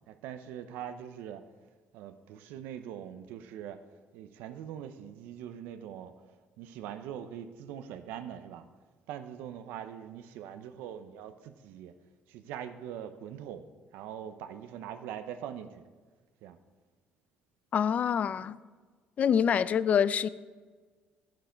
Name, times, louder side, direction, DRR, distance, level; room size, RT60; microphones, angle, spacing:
voice 1, 0.1-1.4 1.9-3.8 4.1-6.1 6.6-8.7 9.1-11.9 12.3-13.7 13.9-15.8 16.4-16.6, right 9 dB, 90° right, 9 dB, 0.6 m, -42 dB
voice 2, 17.7-18.6 19.2-20.3, left 8 dB, 45° left, 17 dB, 0.4 m, -26 dB
8.8 x 8.2 x 5.1 m, 1.4 s
cardioid pair, 105°, 3 cm